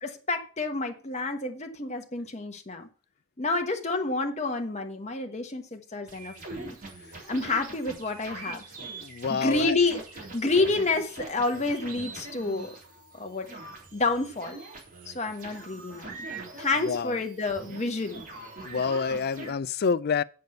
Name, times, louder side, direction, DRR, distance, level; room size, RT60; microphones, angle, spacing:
voice 1, 0.0-2.9 3.4-6.7 7.3-8.6 9.3-12.8 13.1-13.5 13.9-14.6 15.0-16.2 16.6-18.2, left 3 dB, 30° left, 1.2 m, -29 dB
sound 1, 6.1-19.5, right 3 dB, 40° right, 4.1 m, -43 dB
voice 2, 9.0-9.8 16.8-17.2 18.6-20.2, left 5 dB, 45° left, 0.4 m, -27 dB
7.9 x 6.7 x 6.8 m
head